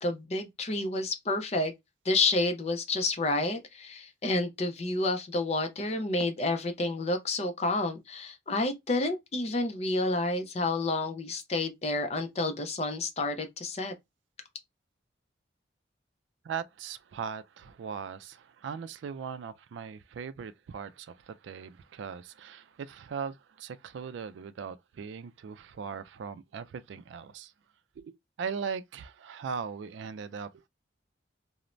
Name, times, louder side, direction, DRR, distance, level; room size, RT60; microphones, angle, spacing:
voice 1, 0.0-1.7 2.1-13.9, left 2 dB, 35° left, 0.5 m, -29 dB
voice 2, 16.4-27.5 28.0-30.7, right 6 dB, 80° right, 0.3 m, -39 dB
2.5 x 2.1 x 3.0 m
head